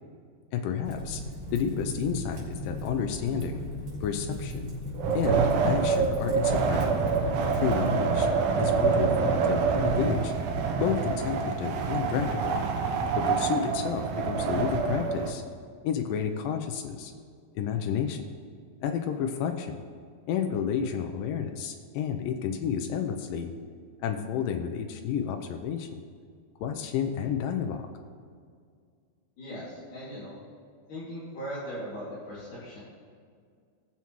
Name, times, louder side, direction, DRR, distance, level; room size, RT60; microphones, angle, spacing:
voice 1, 0.5-1.2 1.5-3.6 4.0-4.7 5.1-7.0 7.5-8.3 8.6-10.3 10.8-12.6 13.2-15.4 15.8-17.1 17.6-18.2 18.8-19.8 20.3-23.5 24.0-26.0 26.6-27.9, left 8 dB, 90° left, 5 dB, 1.9 m, -31 dB
Fire, 0.8-7.9, equal, 50° right, 4.3 m, -37 dB
Wind, 4.9-15.3, right 5 dB, 75° right, 2.1 m, -26 dB
voice 2, 29.4-30.4 30.9-32.8, equal, 55° left, -10 dB, 3.7 m, -39 dB
18.5 x 7.1 x 3.0 m, 2.1 s
omnidirectional pair, 4.7 m